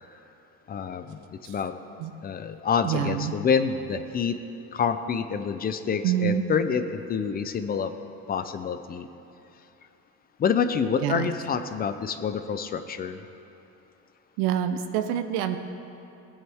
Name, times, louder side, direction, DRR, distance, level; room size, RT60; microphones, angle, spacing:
voice 1, 0.7-1.7 2.2-4.3 4.7-7.9 8.3-9.1 10.4-13.2, left 6 dB, 25° left, 10 dB, 0.5 m, -27 dB
voice 2, 2.8-3.3 6.0-6.4 11.0-11.3 14.4-15.6, right 10 dB, 90° right, 8 dB, 0.8 m, -26 dB
19.5 x 9.6 x 3.5 m, 2.9 s
cardioid pair, 140°, 35 cm